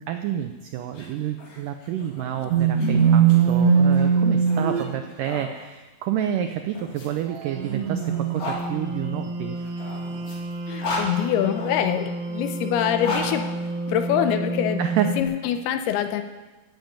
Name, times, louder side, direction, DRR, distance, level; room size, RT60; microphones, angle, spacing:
voice 1, 0.0-9.6 14.8-15.2, right 10 dB, 80° right, 7 dB, 1.9 m, -29 dB
sound 1, 0.8-5.5 6.4-8.6 9.5-11.9 12.7-14.3, left 2 dB, 55° left, 4.3 m, -36 dB
sound 2, 2.5-4.9 7.3-15.2, right 6 dB, 65° right, 1.7 m, -24 dB
voice 2, 10.7-13.4 13.9-14.8 15.2-16.2, left 10 dB, 85° left, 7 dB, 2.7 m, -24 dB
16.0 x 7.6 x 9.1 m, 1.2 s
omnidirectional pair, 4.5 m